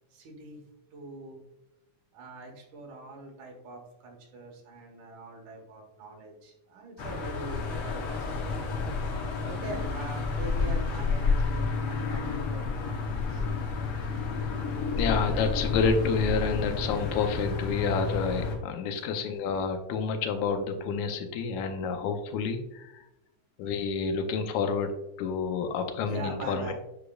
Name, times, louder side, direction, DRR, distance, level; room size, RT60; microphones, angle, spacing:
voice 1, 0.1-0.6 0.9-1.4 2.1-8.5 8.8-9.0 9.4-13.6 26.0-26.7, right 2 dB, 75° right, 1 dB, 2.7 m, -43 dB
sound 1, 7.0-18.6, left 4 dB, 65° left, 1.6 m, -30 dB
voice 2, 15.0-23.0 23.6-24.9 25.2-26.7, left 5 dB, 80° left, 6 dB, 2.1 m, -29 dB
8.1 x 5.0 x 2.3 m, 0.92 s
omnidirectional pair, 3.4 m